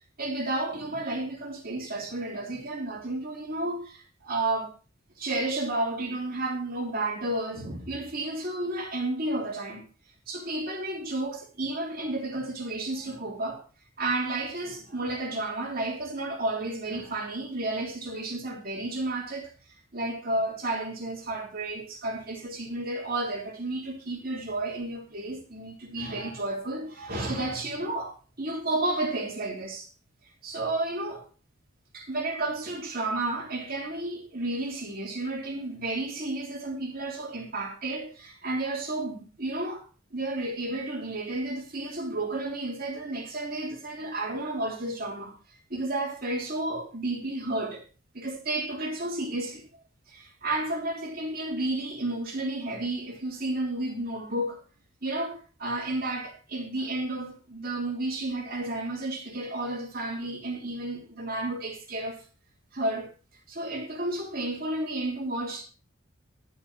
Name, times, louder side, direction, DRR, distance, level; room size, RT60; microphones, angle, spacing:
voice 1, 0.2-4.7 5.2-9.8 10.3-13.6 14.0-19.5 19.9-29.9 30.4-31.2 31.9-39.8 40.1-45.3 45.7-47.8 48.1-49.6 50.1-54.6 55.0-62.2 62.7-63.1 63.5-65.6, right 2 dB, 45° right, 3.3 m, -32 dB
11.5 x 7.2 x 6.1 m
head